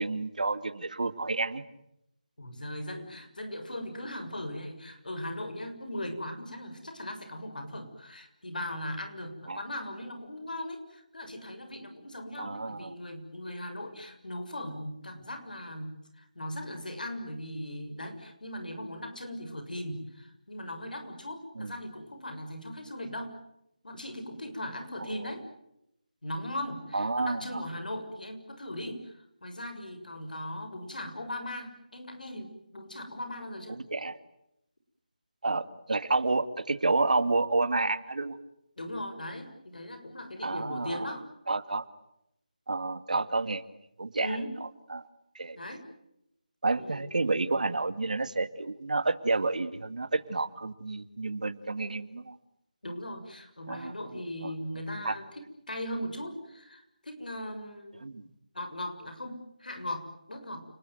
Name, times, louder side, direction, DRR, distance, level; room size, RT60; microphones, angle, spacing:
voice 1, 0.0-1.6 9.5-9.6 12.4-12.9 21.6-21.7 25.0-25.1 26.9-27.6 33.7-34.2 35.4-38.4 40.4-41.1 41.5-41.8 42.7-43.6 44.0-44.4 44.9-45.0 45.3-45.6 46.6-52.4 53.7-54.5 55.0-55.2 58.0-58.2, right 3 dB, 65° right, 11 dB, 2.2 m, -30 dB
voice 2, 2.4-23.3 23.8-25.4 26.2-33.8 38.8-41.2 44.2-44.5 45.5-45.8 46.8-47.0 52.8-58.0 58.5-60.7, left 1 dB, 80° left, 7 dB, 6.8 m, -39 dB
29.5 x 20.5 x 9.4 m, 0.82 s
figure-of-eight pair, 170°, 4 cm